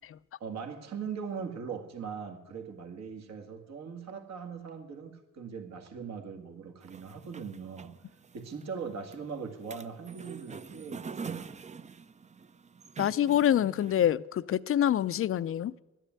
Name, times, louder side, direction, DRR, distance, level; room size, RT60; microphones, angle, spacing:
voice 1, 0.4-7.9 8.3-11.5, right 6 dB, 60° right, 2.0 m, -40 dB
sound 1, 6.8-14.1, right 5 dB, 25° right, 0.5 m, -45 dB
voice 2, 13.0-15.8, left 11 dB, 45° left, 0.5 m, -26 dB
12.5 x 10.0 x 9.4 m
cardioid pair, 90°, 30 cm